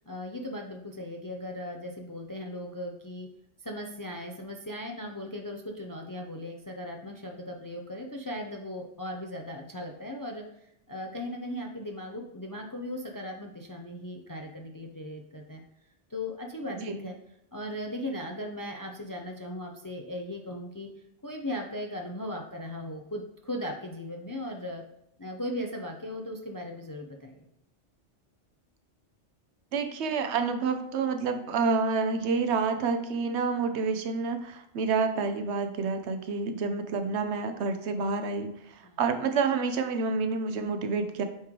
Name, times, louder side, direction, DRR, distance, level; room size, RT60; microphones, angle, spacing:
voice 1, 0.1-3.3 3.6-10.4 10.9-15.6 16.1-17.1 17.5-20.9 21.2-24.8 25.2-27.5 38.8-39.0, left 1 dB, 35° left, 2 dB, 0.3 m, -37 dB
voice 2, 29.7-41.2, right 4 dB, 70° right, 7 dB, 0.9 m, -28 dB
8.4 x 3.1 x 3.7 m, 0.79 s
omnidirectional pair, 1.2 m